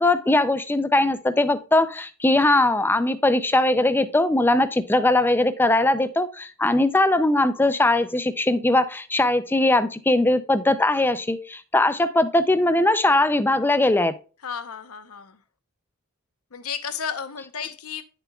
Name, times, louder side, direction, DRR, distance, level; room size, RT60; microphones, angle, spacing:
voice 1, 0.0-14.1, left 2 dB, 10° left, 0.4 m, -20 dB
voice 2, 14.4-15.4 16.5-18.0, left 7 dB, 80° left, 0.8 m, -33 dB
9.4 x 6.8 x 2.3 m
head